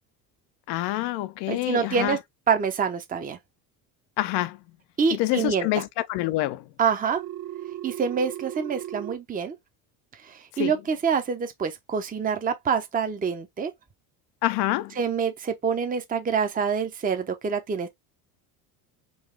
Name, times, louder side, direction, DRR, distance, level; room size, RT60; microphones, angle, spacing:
voice 1, 0.7-2.2 4.2-4.6 5.1-6.7 10.5-10.7 14.4-15.0, left 16 dB, 60° left, 0.6 m, -27 dB
voice 2, 1.5-2.2 2.5-3.4 5.0-5.7 6.8-7.2 7.8-9.5 10.2-13.7 15.0-17.9, right 6 dB, 20° right, 0.7 m, -26 dB
Telephone, 7.1-9.1, right 12 dB, 60° right, 1.6 m, -36 dB
3.9 x 2.3 x 3.3 m
supercardioid pair, 85°, 46 cm